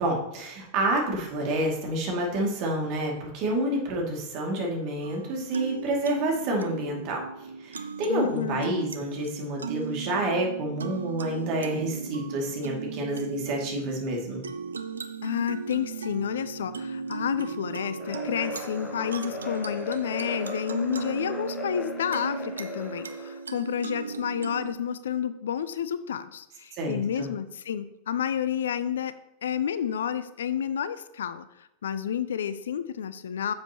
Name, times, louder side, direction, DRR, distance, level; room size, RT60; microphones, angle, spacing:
voice 1, 0.0-7.2 7.6-14.4 26.7-27.3, right 1 dB, 40° right, 0 dB, 2.4 m, -29 dB
sound 1, 5.0-24.7, right 5 dB, 75° right, 0.6 m, -37 dB
voice 2, 8.1-8.7 15.2-33.5, left 8 dB, 65° left, 14 dB, 0.5 m, -30 dB
sound 2, 18.0-23.4, left 2 dB, 20° left, 1.3 m, -38 dB
9.5 x 7.5 x 3.0 m, 0.86 s
figure-of-eight pair, 90°, 0 cm